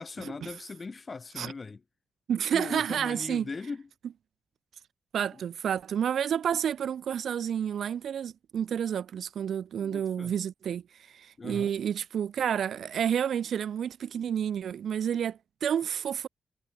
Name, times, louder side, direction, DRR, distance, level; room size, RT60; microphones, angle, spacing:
voice 1, 0.0-1.8 2.4-3.9 5.3-5.4 9.8-10.3 11.4-11.8, left 4 dB, 30° left, 0.5 m, -40 dB
voice 2, 2.3-3.5 5.1-10.8 11.1-16.3, right 8 dB, 70° right, 0.6 m, -30 dB
wide cardioid pair, 125°, 0 cm